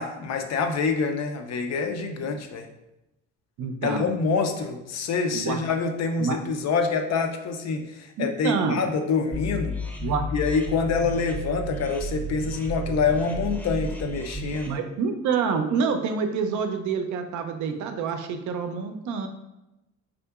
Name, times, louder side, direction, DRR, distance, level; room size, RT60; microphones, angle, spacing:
voice 1, 0.0-2.7 3.8-9.8 10.3-14.8, left 5 dB, 60° left, 5 dB, 0.5 m, -26 dB
voice 2, 3.6-4.1 5.3-5.6 6.2-6.4 8.2-8.8 10.0-10.3 14.7-19.3, right 5 dB, 75° right, 7 dB, 0.5 m, -27 dB
sound 1, 9.3-14.7, right 1 dB, 5° left, 0.6 m, -33 dB
3.6 x 2.7 x 2.3 m, 0.93 s
cardioid pair, 90°, 30 cm